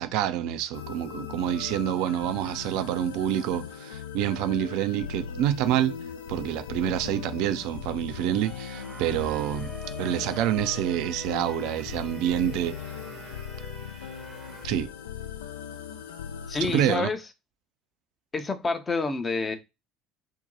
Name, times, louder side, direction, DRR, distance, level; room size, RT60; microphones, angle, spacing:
voice 1, 0.0-6.0 6.3-9.7 10.0-12.8 14.6-14.9 16.6-17.1, right 11 dB, 60° right, 0.3 m, -27 dB
sound 1, 0.7-17.0, left 7 dB, 75° left, 0.3 m, -39 dB
sound 2, 8.3-14.7, right 4 dB, 25° right, 0.6 m, -45 dB
voice 2, 16.5-17.2 18.3-19.6, left 4 dB, 25° left, 0.6 m, -28 dB
2.6 x 2.2 x 3.8 m
figure-of-eight pair, 60°, 0 cm